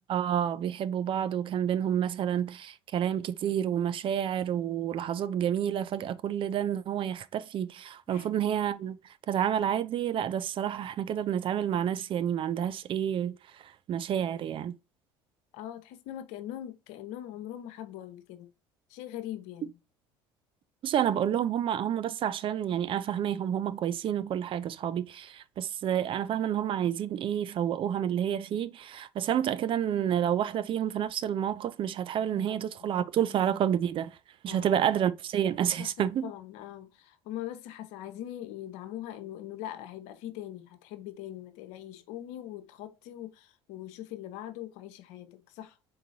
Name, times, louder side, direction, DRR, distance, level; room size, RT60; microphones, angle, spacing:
voice 1, 0.0-9.0 9.3-13.4 13.6-14.7 20.8-34.1 34.4-36.3, right 9 dB, 45° right, 0.4 m, -29 dB
voice 2, 15.5-18.5 18.9-19.8 32.3-33.0 33.4-33.5 34.5-34.7 35.8-45.8, left 12 dB, 70° left, 0.7 m, -42 dB
3.9 x 3.9 x 2.6 m
hypercardioid pair, 75°, 12 cm